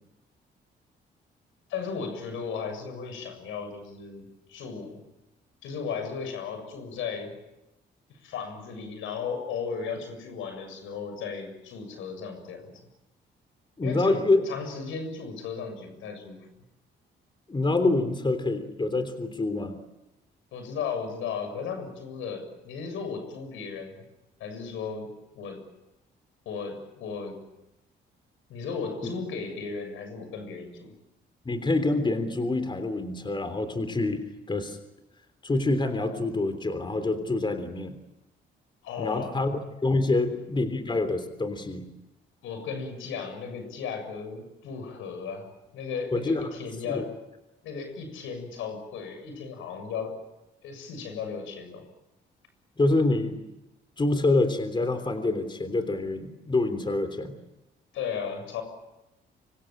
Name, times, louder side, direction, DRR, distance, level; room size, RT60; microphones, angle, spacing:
voice 1, 1.7-5.1 5.6-7.3 8.1-12.7 13.8-16.5 20.5-24.0 24.4-25.1 25.3-25.6 26.5-27.4 28.5-30.9 38.8-39.4 42.4-45.5 45.7-47.1 47.6-50.2 50.6-51.9 57.9-58.6, left 5 dB, 90° left, 7 dB, 7.1 m, -35 dB
voice 2, 13.8-14.4 17.5-19.8 31.4-34.8 35.4-37.9 39.0-41.9 46.1-46.5 46.9-47.0 52.8-53.4 54.0-57.4, left 2 dB, 25° left, 9 dB, 3.5 m, -26 dB
25.5 x 25.0 x 9.0 m, 0.94 s
cardioid pair, 90°, 20 cm